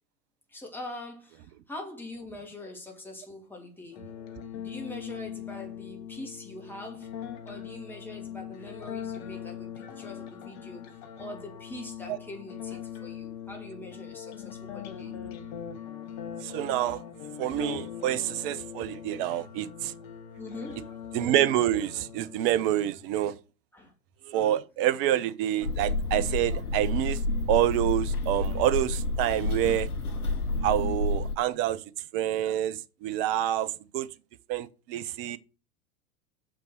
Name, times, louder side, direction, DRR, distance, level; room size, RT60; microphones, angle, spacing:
voice 1, 0.5-4.1 4.5-7.1 7.4-15.1 20.4-20.9 23.7-23.9, left 1 dB, 5° left, 2.7 m, -43 dB
sound 1, 3.9-22.9, left 9 dB, 45° left, 1.4 m, -41 dB
voice 2, 16.4-17.0 17.4-19.9 21.1-23.4 24.2-27.2 27.5-29.9 30.6-31.8 32.1-34.1 34.5-35.4, right 12 dB, 40° right, 0.7 m, -27 dB
sound 2, 25.6-31.4, left 2 dB, 85° left, 1.0 m, -29 dB
6.7 x 6.1 x 6.4 m
figure-of-eight pair, 90°, 43 cm